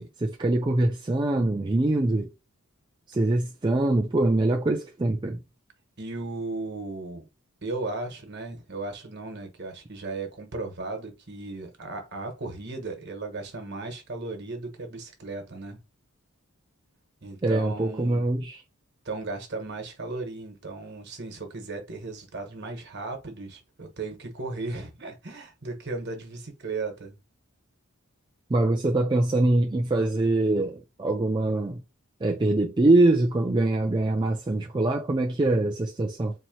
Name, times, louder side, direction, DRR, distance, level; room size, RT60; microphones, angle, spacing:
voice 1, 0.0-2.3 3.1-5.4 17.4-18.6 28.5-31.8 32.2-36.3, right 2 dB, 20° right, 0.3 m, -23 dB
voice 2, 6.0-7.2 7.6-15.8 17.2-18.2 19.0-27.2, right 3 dB, 50° right, 1.3 m, -36 dB
4.2 x 2.9 x 2.9 m
head